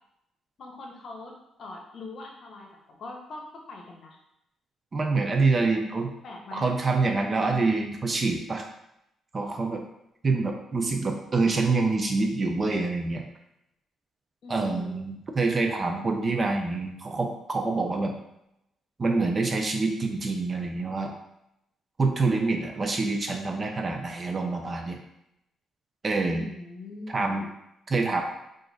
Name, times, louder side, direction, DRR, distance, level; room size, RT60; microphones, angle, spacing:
voice 1, 0.6-2.7 3.0-4.2 6.2-6.7 7.2-7.7 14.4-15.0 26.3-27.4, left 3 dB, 55° left, 1 dB, 0.8 m, -41 dB
voice 2, 4.9-6.1 6.5-8.7 9.3-9.8 10.2-13.3 14.5-18.1 19.0-21.1 22.0-25.0 26.0-26.4 27.1-27.5 27.9-28.2, right 3 dB, 35° right, 3 dB, 0.5 m, -26 dB
2.9 x 2.5 x 3.9 m, 0.82 s
cardioid pair, 90°, 0 cm